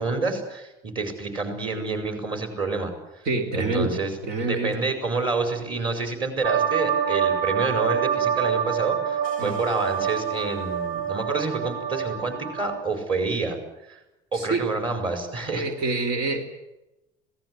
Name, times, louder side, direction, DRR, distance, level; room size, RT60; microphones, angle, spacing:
voice 1, 0.0-3.2 3.5-4.1 4.4-13.6 13.9-14.0 14.3-15.7, right 3 dB, 30° right, 7 dB, 5.2 m, -28 dB
voice 2, 3.3-4.8 9.4-9.6 14.3-14.8 15.5-16.4, right 3 dB, 70° right, 5 dB, 3.7 m, -27 dB
sound 1, 6.4-12.8, right 8 dB, 85° right, 4.3 m, -26 dB
26.0 x 18.5 x 7.9 m, 0.95 s
cardioid pair, 175°, 16 cm